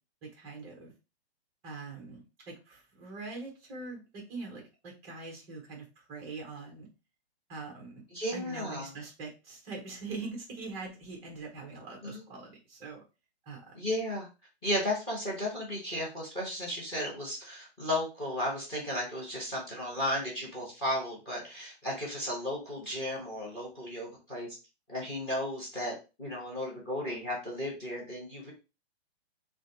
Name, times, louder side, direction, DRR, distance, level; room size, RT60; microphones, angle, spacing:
voice 1, 0.2-0.9 1.6-6.9 7.5-8.0 8.3-13.0 13.5-13.7, right 3 dB, 10° right, 0 dB, 0.7 m, -43 dB
voice 2, 8.1-8.9 12.0-12.2 13.7-14.3 14.6-24.5 24.9-28.5, left 1 dB, 15° left, -2 dB, 1.4 m, -34 dB
6.0 x 2.4 x 2.9 m, 0.29 s
hypercardioid pair, 175°, 33 cm